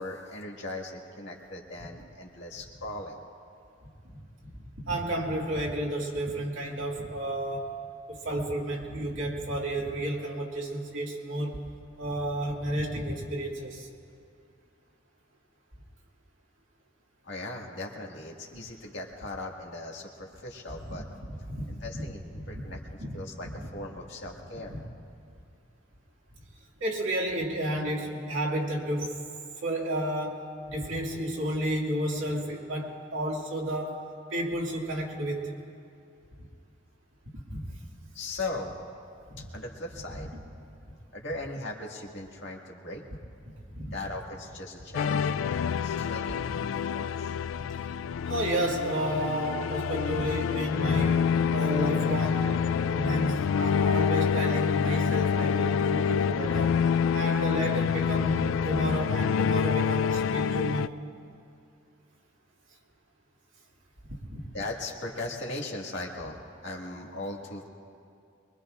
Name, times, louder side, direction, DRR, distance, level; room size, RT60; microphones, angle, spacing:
voice 1, 0.0-3.2 17.2-21.1 21.8-22.8 23.1-24.8 38.1-38.8 39.5-40.3 41.1-43.0 43.9-47.3 64.5-67.7, left 2 dB, 65° left, -1 dB, 2.0 m, -38 dB
voice 2, 4.5-7.7 8.1-11.6 12.0-13.9 20.9-21.1 21.4-22.0 22.5-23.1 23.5-23.6 24.7-24.8 26.8-29.2 29.6-34.0 34.3-35.6 36.4-36.5 37.3-37.8 39.3-39.4 40.1-40.2 43.4-43.9 47.5-47.7 48.2-52.5 52.8-56.8 57.1-61.0 64.3-64.4, right 1 dB, 85° right, -2 dB, 2.2 m, -31 dB
sound 1, 44.9-60.9, left 7 dB, 90° left, 0.3 m, -27 dB
23.5 x 22.5 x 2.5 m, 2.4 s
head